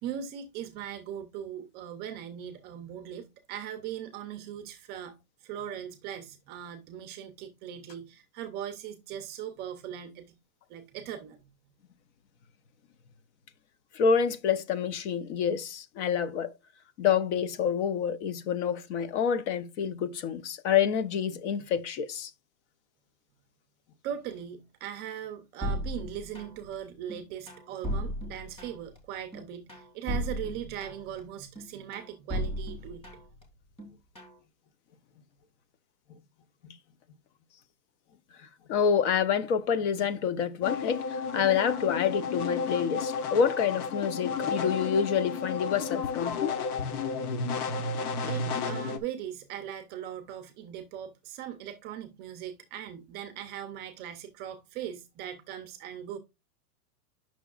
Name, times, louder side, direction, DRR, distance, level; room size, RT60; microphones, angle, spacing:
voice 1, 0.0-5.2 5.4-10.4 10.7-11.4 24.0-33.1 48.3-56.2, right 10 dB, 20° right, 0.5 m, -39 dB
voice 2, 13.9-16.5 17.0-22.3 36.6-36.8 38.7-46.5, left 7 dB, 50° left, 0.8 m, -27 dB
sound 1, 25.6-26.7 27.1-29.0 29.3-31.2 31.5-33.4 33.8-34.4, equal, 10° left, 2.2 m, -35 dB
sound 2, 40.6-49.0, left 5 dB, 75° left, 1.2 m, -32 dB
9.4 x 6.1 x 2.4 m
supercardioid pair, 150°, 46 cm